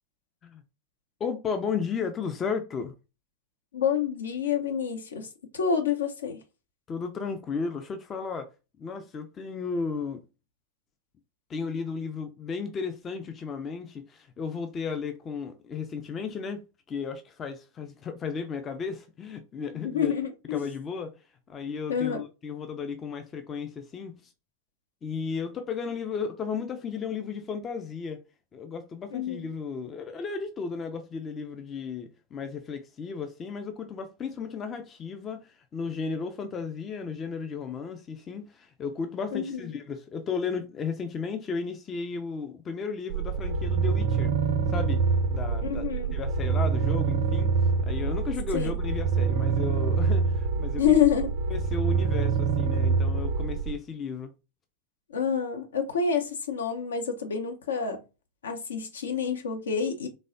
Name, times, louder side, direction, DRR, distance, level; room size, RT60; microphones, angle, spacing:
voice 1, 1.2-2.9 6.9-8.5 8.8-10.2 11.5-16.6 16.9-20.1 20.5-21.1 21.5-24.2 25.0-28.2 28.5-44.3 44.7-45.0 45.3-45.8 46.1-47.5 47.8-51.0 51.5-54.3, left 5 dB, 25° left, 0.4 m, -34 dB
voice 2, 3.7-5.3 5.5-6.4 19.8-20.6 21.9-22.2 29.1-29.5 39.3-39.7 45.6-46.1 48.5-48.7 50.8-51.3 55.1-58.0 58.4-60.1, left 7 dB, 70° left, 0.6 m, -27 dB
sound 1, 43.1-53.8, right 5 dB, 50° right, 0.4 m, -26 dB
3.2 x 2.0 x 2.5 m
figure-of-eight pair, 90°, 0 cm